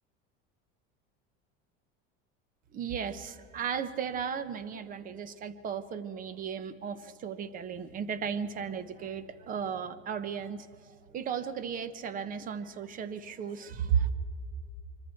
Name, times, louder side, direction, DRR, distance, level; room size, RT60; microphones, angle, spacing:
voice 1, 2.7-10.7 11.1-14.1, right 7 dB, 30° right, 13 dB, 1.0 m, -35 dB
25.0 x 25.0 x 4.5 m, 2.3 s
cardioid pair, 160°, 29 cm